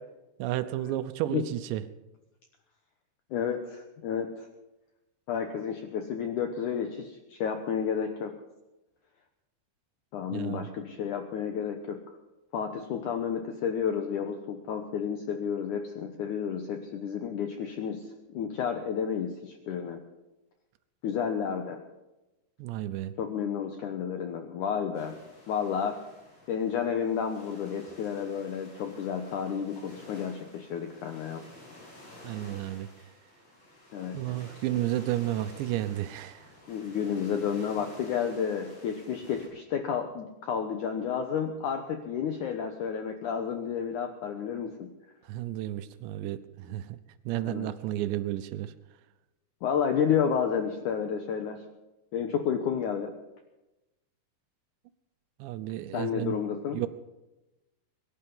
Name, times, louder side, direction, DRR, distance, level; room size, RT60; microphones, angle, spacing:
voice 1, 0.4-1.8 10.3-10.7 22.6-23.1 32.2-32.9 34.1-36.5 45.3-47.0 47.3-48.7 55.4-56.4 56.7-56.9, right 14 dB, 85° right, 11 dB, 3.0 m, -32 dB
voice 2, 3.3-4.5 5.3-8.3 10.1-12.0 12.5-18.1 18.3-20.0 21.0-21.8 23.2-25.2 25.5-26.0 26.5-31.4 33.9-34.3 36.7-44.9 47.4-47.7 49.6-51.6 52.1-53.1 55.9-56.8, left 7 dB, 80° left, 6 dB, 1.8 m, -31 dB
sound 1, 24.9-39.5, left 1 dB, 40° left, 8.9 m, -52 dB
22.5 x 11.5 x 5.5 m, 1.0 s
omnidirectional pair, 5.0 m